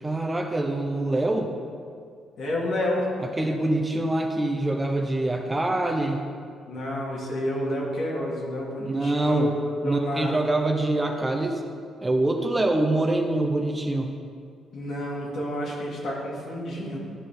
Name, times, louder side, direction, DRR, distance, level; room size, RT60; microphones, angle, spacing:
voice 1, 0.0-1.5 3.2-6.3 8.8-9.5 9.8-11.6 12.0-14.1, right 2 dB, 20° right, 3 dB, 0.8 m, -25 dB
voice 2, 2.4-3.1 6.7-9.5 9.8-10.4 14.7-17.0, left 1 dB, 65° left, -3 dB, 2.3 m, -29 dB
12.5 x 5.0 x 3.9 m, 2.2 s
cardioid pair, 90°, 0 cm